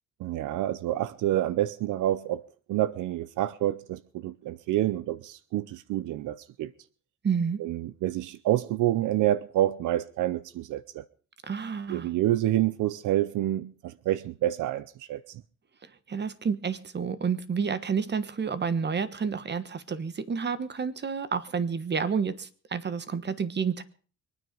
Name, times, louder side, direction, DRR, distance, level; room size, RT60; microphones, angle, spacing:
voice 1, 0.2-2.4 2.7-6.7 7.6-11.0 11.9-15.4, right 13 dB, 80° right, 0.7 m, -28 dB
voice 2, 7.2-7.6 11.4-12.1 16.1-23.8, right 6 dB, 35° right, 1.3 m, -30 dB
24.0 x 9.7 x 5.2 m
cardioid pair, 90°, 30 cm